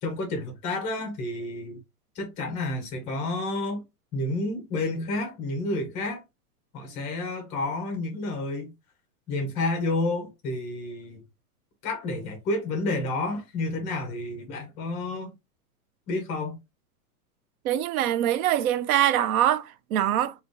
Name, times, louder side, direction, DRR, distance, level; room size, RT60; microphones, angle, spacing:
voice 1, 0.0-1.8 2.2-3.8 4.1-6.2 6.7-8.7 9.3-11.2 11.8-15.3 16.1-16.6, left 2 dB, 15° left, 0.5 m, -30 dB
voice 2, 17.6-20.3, right 11 dB, 70° right, 0.5 m, -24 dB
3.5 x 2.3 x 2.5 m
supercardioid pair, 155°, 45 cm